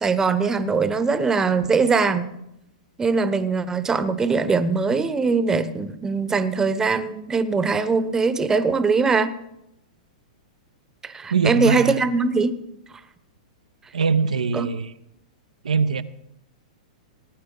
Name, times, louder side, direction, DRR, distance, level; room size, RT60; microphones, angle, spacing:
voice 1, 0.0-2.3 3.0-9.3 11.0-12.5 14.5-14.7, right 4 dB, 15° right, 12 dB, 0.9 m, -21 dB
voice 2, 11.3-12.0 13.9-14.9 15.6-16.0, right 5 dB, 85° right, 10 dB, 0.6 m, -22 dB
18.0 x 9.3 x 3.9 m, 0.82 s
hypercardioid pair, 115°, 4 cm